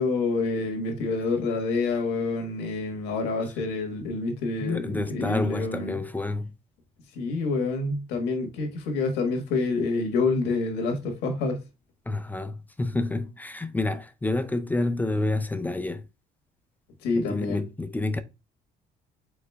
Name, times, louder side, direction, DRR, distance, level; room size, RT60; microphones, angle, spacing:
voice 1, 0.0-6.0 7.1-11.6 17.0-17.6, left 3 dB, 85° left, 1.4 m, -27 dB
voice 2, 4.6-6.5 12.1-16.1 17.1-18.2, left 2 dB, 10° left, 0.4 m, -29 dB
4.8 x 3.8 x 2.3 m
cardioid pair, 110°, 17 cm